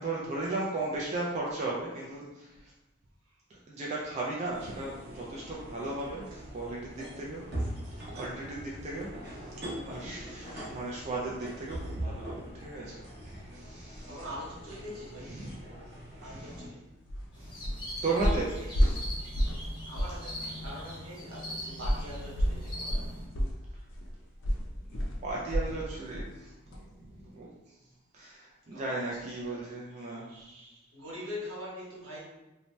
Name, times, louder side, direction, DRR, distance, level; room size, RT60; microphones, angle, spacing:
voice 1, 0.0-2.7 3.5-6.2 6.5-7.4 7.7-7.8 8.1-14.2 15.2-15.6 16.2-16.6 17.4-17.6 18.0-18.6 24.9-27.5 28.1-30.3, right 2 dB, 30° right, -4 dB, 0.3 m, -36 dB
sound 1, 4.5-16.7, right 1 dB, 50° right, 0.7 m, -42 dB
voice 2, 14.1-15.3 16.2-16.8 18.6-19.0 19.9-23.1 28.7-29.1 29.4-29.6 30.3-32.2, left 1 dB, 85° right, -6 dB, 1.2 m, -43 dB
sound 2, 17.1-17.3 17.6-17.9 18.2-19.7 19.9-20.2 20.6-20.7 21.8-25.8 26.1-26.4 26.7-26.8, equal, 60° left, 0.5 m, -29 dB
sound 3, 17.3-23.2, equal, 20° left, 0.7 m, -42 dB
2.7 x 2.1 x 3.1 m, 1.0 s
head